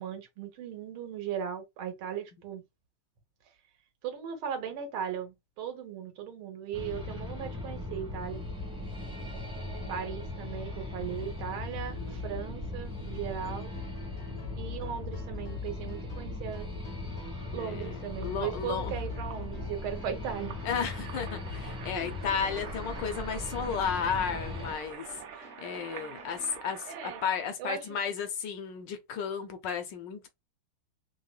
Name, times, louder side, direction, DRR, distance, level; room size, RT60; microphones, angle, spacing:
voice 1, 0.0-2.6 4.0-8.4 9.9-13.7 14.5-16.7 17.5-20.6 21.9-22.1 26.9-27.2 27.6-28.0, right 8 dB, 85° right, 1.7 m, -38 dB
sound 1, 6.7-24.7, left 2 dB, 5° right, 0.5 m, -38 dB
sound 2, 13.4-26.7, left 1 dB, 60° left, 0.7 m, -54 dB
voice 2, 14.3-14.9 17.6-18.9 20.6-25.1 25.3-30.3, left 6 dB, 75° left, 1.1 m, -34 dB
sound 3, 18.1-27.4, right 7 dB, 70° right, 1.1 m, -47 dB
4.6 x 2.2 x 2.2 m
omnidirectional pair, 2.3 m